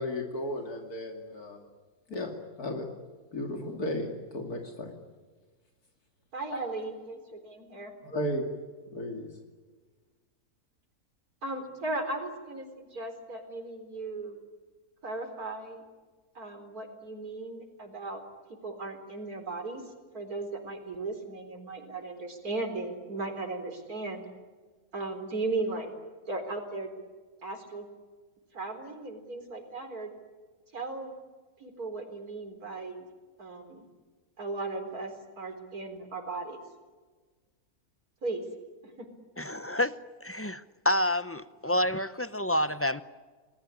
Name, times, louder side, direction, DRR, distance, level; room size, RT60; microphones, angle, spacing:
voice 1, 0.0-1.6 2.1-2.3 2.6-2.9 3.3-4.9 6.5-6.6 8.0-8.5 8.9-9.3, left 1 dB, 75° left, 3 dB, 3.1 m, -34 dB
voice 2, 6.3-7.9 11.4-14.4 15.0-15.8 16.3-18.2 18.6-19.8 20.1-24.3 24.9-25.9 26.3-26.9 27.4-27.9 28.5-30.1 30.7-31.1 31.6-33.1 33.4-33.8 34.4-35.1 35.4-36.6 38.2-38.4, right 3 dB, 75° right, 6 dB, 4.5 m, -36 dB
voice 3, 39.4-43.0, left 1 dB, 20° left, 14 dB, 0.4 m, -29 dB
29.0 x 20.0 x 9.9 m, 1.4 s
omnidirectional pair, 1.6 m